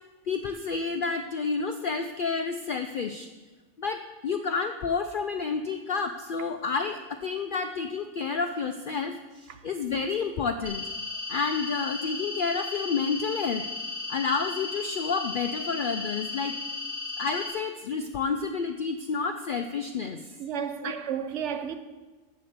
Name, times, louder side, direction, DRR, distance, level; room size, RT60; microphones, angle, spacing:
voice 1, 0.3-3.3 3.8-10.8 11.3-13.6 14.1-16.5 17.2-20.2 20.8-20.9, left 5 dB, 65° left, 0.5 m, -30 dB
sound 1, 10.7-17.5, left 3 dB, 25° right, 2.9 m, -35 dB
voice 2, 20.4-21.8, right 8 dB, 65° right, 1.0 m, -32 dB
7.8 x 7.6 x 6.5 m
omnidirectional pair, 1.4 m